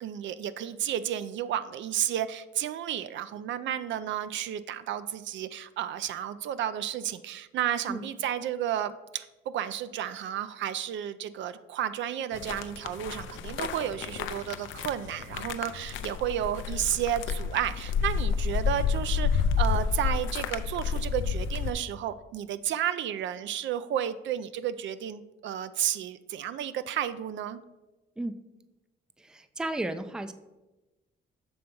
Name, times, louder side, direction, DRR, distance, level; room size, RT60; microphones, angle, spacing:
voice 1, 0.0-27.6, right 10 dB, 70° right, 13 dB, 0.4 m, -32 dB
sound 1, 12.3-21.7, left 6 dB, 75° left, 0.5 m, -30 dB
voice 2, 29.2-30.3, right 2 dB, 5° right, 11 dB, 0.3 m, -34 dB
6.9 x 3.4 x 5.3 m, 1.1 s
cardioid pair, 90°, 20 cm